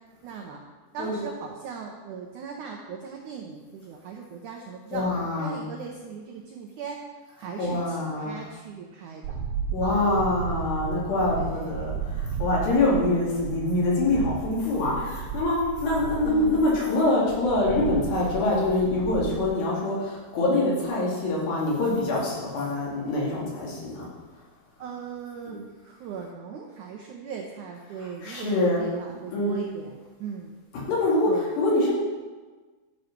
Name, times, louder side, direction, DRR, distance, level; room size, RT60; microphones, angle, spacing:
voice 1, 0.2-0.6 0.9-7.0 7.4-9.4 9.8-10.1 11.4-12.0 12.8-13.0 16.2-17.0 19.2-19.5 24.8-30.5 31.3-31.5, right 6 dB, 90° right, 1 dB, 1.7 m, -39 dB
voice 2, 4.9-5.6 7.6-8.4 9.7-24.1 25.4-25.6 28.2-28.9 29.3-29.6 30.7-31.3 31.6-31.9, left 2 dB, 85° left, -5 dB, 4.7 m, -25 dB
sound 1, 9.2-19.5, right 6 dB, 75° right, 2.5 m, -34 dB
12.0 x 5.3 x 5.9 m, 1.3 s
omnidirectional pair, 4.7 m